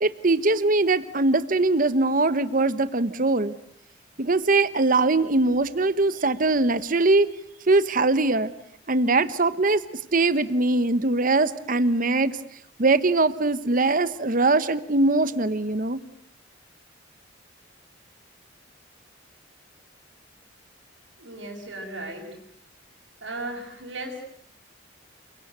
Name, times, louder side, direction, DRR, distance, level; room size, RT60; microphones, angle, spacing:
voice 1, 0.0-3.5 4.2-7.3 7.7-8.5 8.9-9.8 10.1-12.4 12.8-16.0, right 2 dB, 45° right, 14 dB, 1.0 m, -21 dB
voice 2, 21.2-22.4 23.2-24.2, right 2 dB, 75° right, -2 dB, 6.3 m, -36 dB
29.5 x 22.5 x 8.2 m, 0.68 s
head